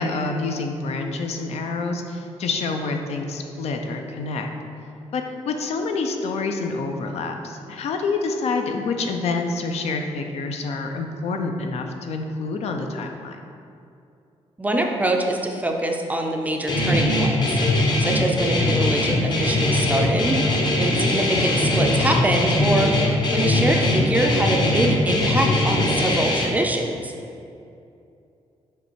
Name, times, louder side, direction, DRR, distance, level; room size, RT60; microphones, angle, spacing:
voice 1, 0.0-4.5 5.1-13.4 21.3-21.6, left 3 dB, 70° left, 4 dB, 0.6 m, -27 dB
voice 2, 14.6-20.4 20.8-27.1, right 1 dB, 15° right, 2 dB, 0.4 m, -24 dB
Guitar, 16.7-26.5, left 1 dB, 40° left, 0.8 m, -21 dB
6.7 x 3.2 x 4.6 m, 2.6 s
wide cardioid pair, 150°, 11 cm